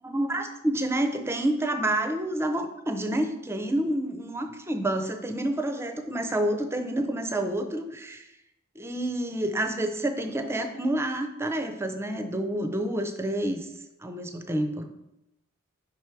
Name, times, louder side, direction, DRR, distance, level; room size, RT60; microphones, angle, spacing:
voice 1, 0.0-8.3 8.8-13.7 14.0-14.9, right 1 dB, 10° right, 7 dB, 0.5 m, -28 dB
5.3 x 4.4 x 4.6 m, 0.88 s
head